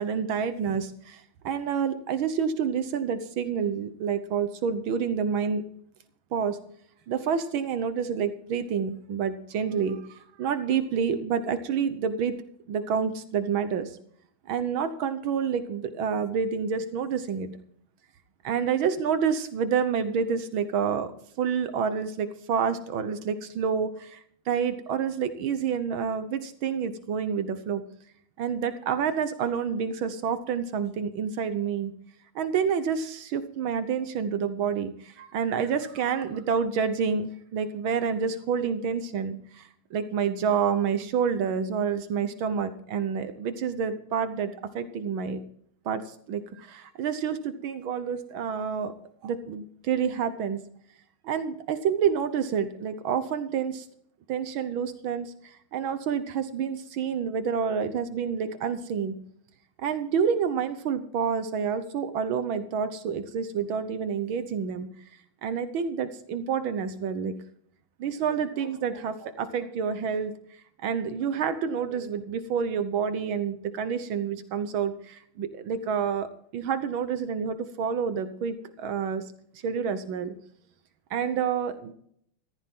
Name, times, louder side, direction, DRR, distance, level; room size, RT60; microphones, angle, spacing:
voice 1, 0.0-5.6 6.3-6.6 7.1-12.4 12.7-14.0 14.5-17.5 18.4-21.1 21.4-27.8 28.4-31.9 32.4-45.4 45.9-48.9 49.2-50.6 51.2-53.9 54.3-59.2 59.8-64.9 65.4-67.4 68.0-70.3 70.8-76.3 76.5-79.3 79.6-80.3 81.1-81.9, right 7 dB, 75° right, 11 dB, 1.8 m, -28 dB
15.0 x 13.5 x 3.7 m, 0.65 s
omnidirectional pair, 2.2 m